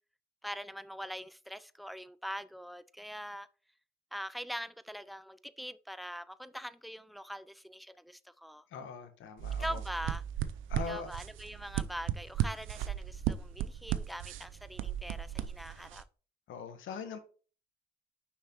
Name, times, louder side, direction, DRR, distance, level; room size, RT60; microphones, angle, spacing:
voice 1, 0.4-3.5 4.1-8.6 9.6-10.2 10.9-16.0, equal, ahead, 0.4 m, -43 dB
voice 2, 8.7-9.8 10.7-11.1 16.5-17.2, left 6 dB, 80° left, 1.2 m, -41 dB
sound 1, 9.4-16.0, right 11 dB, 80° right, 0.5 m, -36 dB
6.4 x 5.7 x 2.9 m
cardioid pair, 90°, 20 cm